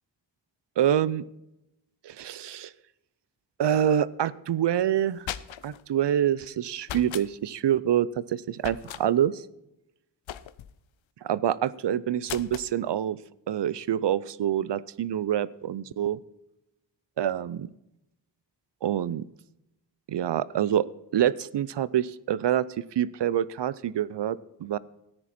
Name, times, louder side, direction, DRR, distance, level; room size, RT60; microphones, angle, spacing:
voice 1, 0.8-1.2 2.0-2.7 3.6-5.2 5.6-9.4 11.3-13.2 13.5-16.2 17.2-17.7 18.8-19.2 20.1-20.9 21.1-22.7 23.0-24.8, right 10 dB, 65° right, 19 dB, 0.6 m, -26 dB
sound 1, 5.0-5.8 6.8-7.3 8.6-9.0 10.3-10.8 12.2-12.7, left 11 dB, 85° left, 0.6 m, -38 dB
14.0 x 9.9 x 4.3 m, 0.87 s
cardioid pair, 55°, 45 cm